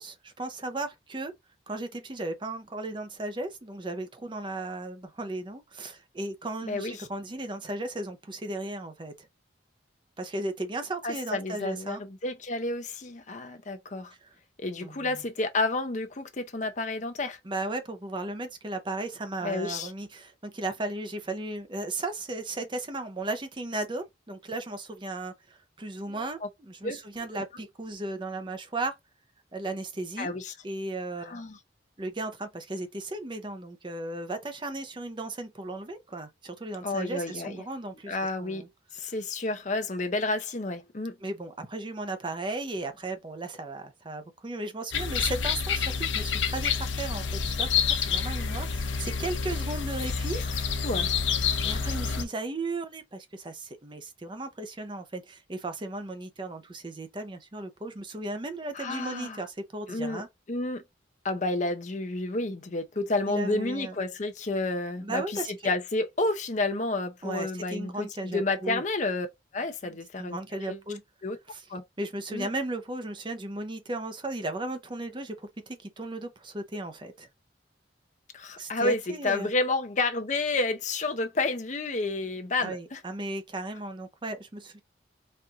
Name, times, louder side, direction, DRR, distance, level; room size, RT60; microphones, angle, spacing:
voice 1, 0.0-1.3 1.7-9.3 10.2-12.0 14.2-14.3 14.8-15.2 17.4-29.0 29.5-30.3 30.6-31.3 32.0-38.7 39.0-39.1 41.2-50.4 51.6-60.3 63.3-64.0 65.0-65.5 67.2-68.8 70.2-71.0 71.5-71.7 72.0-77.3 78.6-79.5 82.6-84.8, right 2 dB, 25° right, 0.6 m, -36 dB
voice 2, 6.6-7.1 11.0-14.1 14.6-17.4 19.4-19.9 26.1-26.5 26.8-27.0 30.2-30.5 31.2-31.6 36.8-37.6 38.1-38.7 38.9-41.2 50.3-50.5 50.8-51.1 58.7-59.4 59.9-60.2 60.5-60.8 61.2-65.4 65.6-69.3 69.5-70.4 70.7-70.8 71.2-71.4 71.7-71.8 72.3-72.5 78.3-83.0, left 2 dB, 40° left, 0.6 m, -30 dB
sound 1, 44.9-52.2, left 6 dB, 85° left, 0.7 m, -28 dB
4.3 x 2.6 x 3.5 m
head